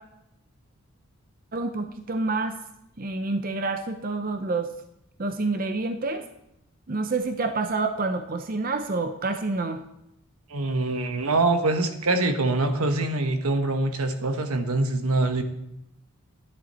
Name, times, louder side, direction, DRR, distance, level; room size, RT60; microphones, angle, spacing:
voice 1, 1.5-2.6 3.0-4.7 5.2-6.3 6.9-9.8, right 3 dB, 40° right, 7 dB, 0.6 m, -28 dB
voice 2, 10.5-15.4, right 2 dB, 80° right, 7 dB, 1.2 m, -24 dB
11.0 x 10.0 x 4.3 m, 0.80 s
head